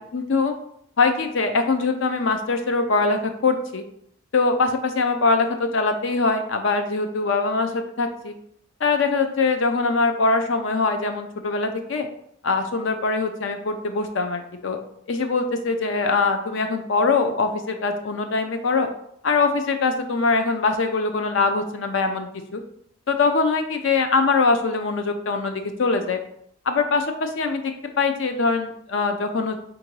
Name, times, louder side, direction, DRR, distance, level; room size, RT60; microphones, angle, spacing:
voice 1, 0.1-0.5 1.0-3.8 4.3-8.3 8.8-12.1 12.4-14.8 15.1-18.9 19.2-22.6 23.1-26.2 26.7-29.6, left 4 dB, 70° left, 6 dB, 0.5 m, -22 dB
3.7 x 2.6 x 4.6 m, 0.72 s
head